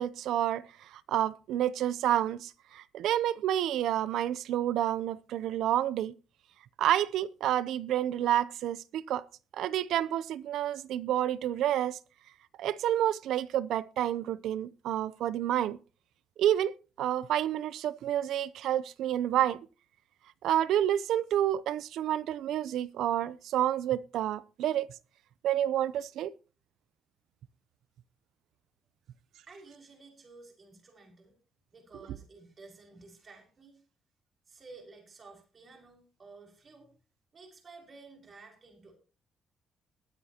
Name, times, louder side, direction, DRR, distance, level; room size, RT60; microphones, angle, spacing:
voice 1, 0.0-6.1 6.8-9.3 9.5-12.0 12.6-15.8 16.4-19.6 20.4-24.9 25.4-26.3, right 11 dB, 80° right, 0.6 m, -29 dB
voice 2, 29.5-31.4 31.7-33.8 34.5-36.9 37.3-38.9, right 3 dB, 40° right, 5.7 m, -53 dB
21.0 x 9.3 x 2.9 m
cardioid pair, 90°, 0 cm